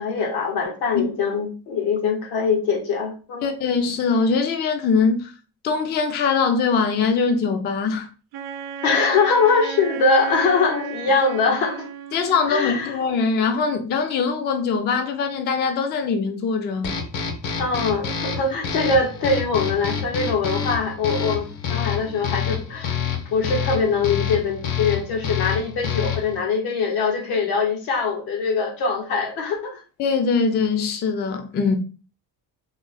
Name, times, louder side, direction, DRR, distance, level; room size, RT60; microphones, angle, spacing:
voice 1, 0.0-3.5 8.8-11.9 12.5-13.0 17.6-22.9 23.3-29.8, left 4 dB, 85° left, 1.2 m, -22 dB
voice 2, 3.4-5.3 5.6-8.1 12.1-16.9 30.0-31.8, left 5 dB, 30° left, 0.4 m, -22 dB
Wind instrument woodwind instrument, 8.3-12.7, right 7 dB, 65° right, 0.6 m, -35 dB
sound 1, 16.8-26.4, left 7 dB, 60° left, 0.8 m, -27 dB
3.7 x 2.1 x 3.9 m
cardioid pair, 175°, 35 cm